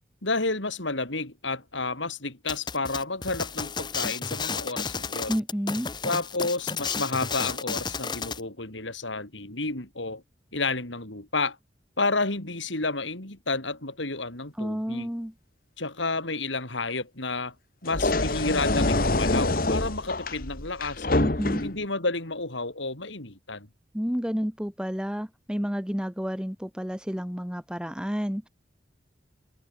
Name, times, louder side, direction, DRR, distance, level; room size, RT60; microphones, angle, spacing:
voice 1, 0.2-5.4 6.0-10.2 10.5-11.6 12.0-15.1 15.8-17.5 17.8-21.2 21.6-23.7, left 3 dB, 85° left, 5.0 m, -31 dB
sound 1, 2.5-8.4, left 5 dB, 25° left, 0.8 m, -32 dB
voice 2, 5.3-5.9 14.6-15.3 21.2-21.6 23.9-28.5, equal, 5° right, 1.0 m, -30 dB
sound 2, 17.9-21.9, left 2 dB, 50° left, 1.5 m, -26 dB
head